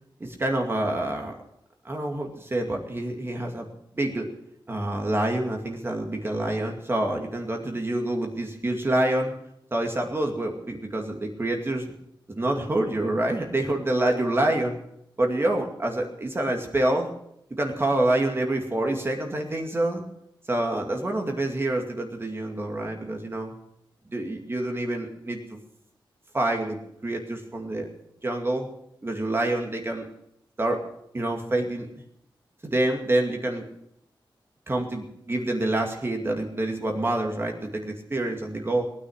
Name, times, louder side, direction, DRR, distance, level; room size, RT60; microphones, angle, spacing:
voice 1, 0.2-1.3 1.8-3.7 3.9-4.3 4.7-9.3 9.7-11.9 12.3-14.8 15.2-17.1 17.6-20.0 20.5-23.5 24.1-25.6 26.3-27.9 28.2-28.7 29.0-30.1 30.6-30.9 31.1-31.9 32.6-33.7 34.7-38.8, right 1 dB, 25° right, 2 dB, 2.3 m, -27 dB
19.5 x 9.9 x 6.4 m, 0.76 s
wide cardioid pair, 120°, 9 cm